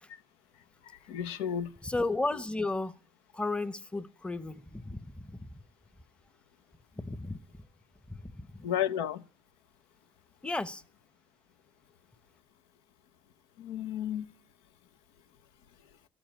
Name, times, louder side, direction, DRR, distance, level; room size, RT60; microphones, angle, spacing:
voice 1, 1.1-1.7 8.6-9.2 13.6-14.3, left 10 dB, 90° left, 0.8 m, -32 dB
voice 2, 1.8-3.0 3.3-5.5 7.0-7.4 8.1-8.5 10.4-10.8, left 2 dB, 10° left, 0.9 m, -34 dB
13.0 x 7.2 x 8.9 m
cardioid pair, 95°, 10 cm